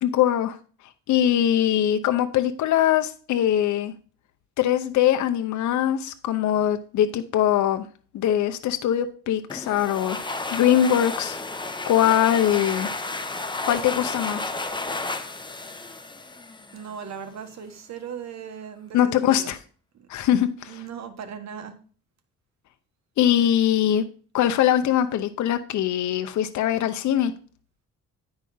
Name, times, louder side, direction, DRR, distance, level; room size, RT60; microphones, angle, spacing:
voice 1, 0.0-0.6 1.1-3.9 4.6-7.9 8.1-11.4 11.9-12.9 13.6-14.5 18.9-19.6 20.1-20.7 23.2-24.0 24.3-27.3, left 11 dB, 70° left, 8 dB, 0.7 m, -22 dB
sound 1, 9.5-17.0, left 3 dB, 15° left, 1.0 m, -32 dB
voice 2, 16.7-19.5 19.9-20.1 20.7-21.8, right 7 dB, 60° right, 7 dB, 1.4 m, -38 dB
9.7 x 4.8 x 5.5 m, 0.41 s
cardioid pair, 90°, 30 cm